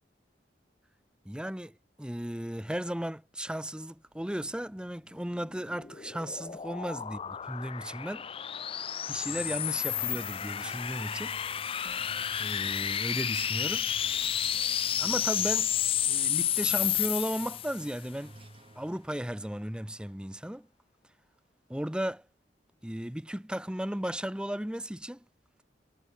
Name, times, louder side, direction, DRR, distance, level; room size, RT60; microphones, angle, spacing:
voice 1, 1.2-7.2 7.5-8.3 9.1-11.4 12.4-13.9 15.0-15.7 16.1-18.3 18.8-20.7 21.7-22.2 22.8-25.2, equal, 5° right, 0.9 m, -35 dB
sound 1, 5.5-18.0, left 10 dB, 30° left, 0.4 m, -31 dB
sound 2, 9.3-19.0, right 2 dB, 30° right, 1.0 m, -52 dB
head